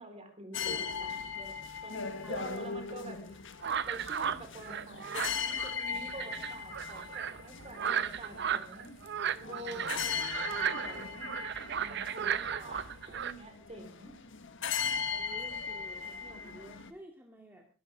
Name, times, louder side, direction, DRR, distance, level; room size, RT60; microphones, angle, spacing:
voice 1, 0.0-3.4 3.9-8.9 9.3-11.3 11.7-14.1, right 1 dB, 30° right, 5 dB, 4.2 m, -47 dB
sound 1, 0.5-16.9, left 6 dB, 65° left, 1.4 m, -39 dB
sound 2, 3.6-13.3, right 8 dB, 60° right, 0.8 m, -35 dB
voice 2, 15.0-17.7, right 1 dB, 10° right, 1 dB, 2.1 m, -52 dB
22.5 x 12.5 x 3.6 m, 0.36 s
head